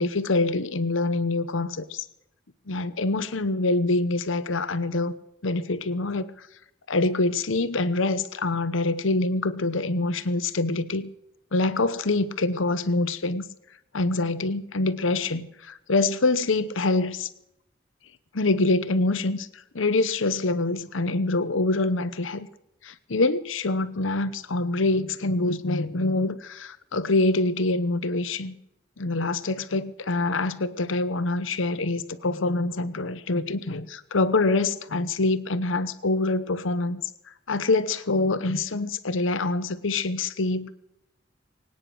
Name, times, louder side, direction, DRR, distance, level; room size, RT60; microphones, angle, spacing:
voice 1, 0.0-2.0 2.7-5.1 5.4-6.3 6.9-11.1 11.5-13.4 13.9-17.3 18.3-19.5 19.7-22.5 22.8-28.5 29.0-37.0 37.5-40.7, left 2 dB, 85° left, 13 dB, 0.9 m, -25 dB
23.0 x 9.7 x 6.3 m, 0.85 s
head